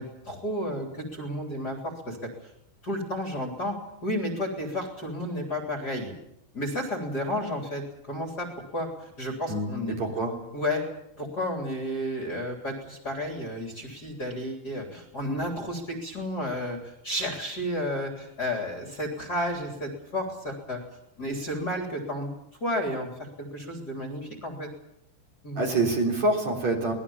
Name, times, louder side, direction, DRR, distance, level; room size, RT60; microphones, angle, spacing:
voice 1, 0.0-2.2 2.4-2.5 2.8-3.7 4.0-6.1 6.5-8.5 8.7-10.0 10.5-10.8 11.2-20.8 21.2-22.3 22.6-24.7 25.4-25.6, left 1 dB, 25° left, 2 dB, 3.4 m, -32 dB
voice 2, 10.0-10.3 25.6-26.9, right 2 dB, 40° right, 0 dB, 4.6 m, -25 dB
24.5 x 20.0 x 7.2 m, 0.83 s
omnidirectional pair, 4.9 m